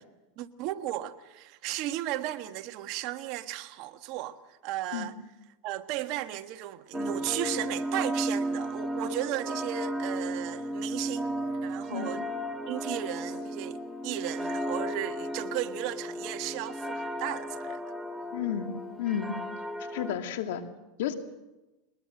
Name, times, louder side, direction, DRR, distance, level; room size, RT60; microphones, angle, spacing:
voice 1, 0.4-5.1 5.6-12.2 12.7-17.8, right 14 dB, 55° right, 1.5 m, -35 dB
sound 1, 6.9-20.2, equal, 5° right, 1.5 m, -34 dB
voice 2, 18.3-18.7 19.0-19.3 19.9-20.6 21.0-21.1, left 10 dB, 75° left, 2.4 m, -31 dB
22.0 x 20.5 x 7.8 m
supercardioid pair, 125°, 0 cm